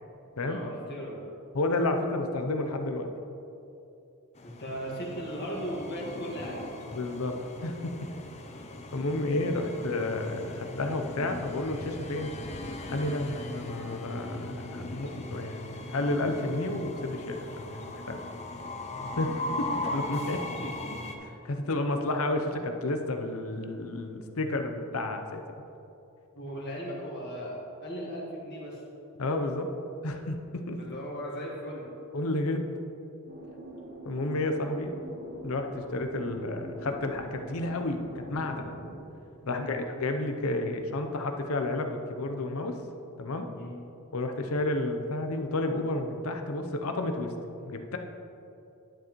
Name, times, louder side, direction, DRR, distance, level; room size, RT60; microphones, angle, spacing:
voice 1, 0.4-1.2 4.4-6.6 19.4-19.6 20.6-20.9 26.3-28.8 30.8-31.9 39.4-39.7 43.5-43.7, equal, 50° left, -4 dB, 1.6 m, -37 dB
voice 2, 1.5-3.1 6.9-7.9 8.9-12.3 12.9-18.2 19.2-20.5 21.2-25.4 29.2-29.7 30.0-30.8 32.1-32.8 34.1-35.0 35.4-38.8 39.5-42.8 43.2-43.5 44.1-47.3 47.6-48.0, left 2 dB, 70° left, 5 dB, 0.7 m, -31 dB
Train, 4.4-21.2, left 2 dB, 30° left, 0.6 m, -39 dB
sound 1, 33.3-39.0, right 1 dB, 50° right, 1.1 m, -44 dB
11.0 x 7.3 x 3.1 m, 2.8 s
head